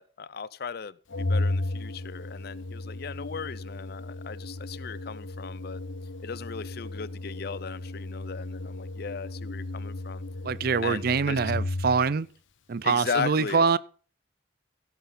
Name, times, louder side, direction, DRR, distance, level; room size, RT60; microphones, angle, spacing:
voice 1, 0.0-5.8 6.2-10.2 10.8-11.4 12.8-13.6, left 6 dB, 55° left, 0.5 m, -37 dB
Organ, 1.1-12.1, left 2 dB, 90° left, 1.0 m, -34 dB
voice 2, 10.4-12.3 12.7-13.8, right 5 dB, 55° right, 0.5 m, -24 dB
16.5 x 8.3 x 3.9 m
head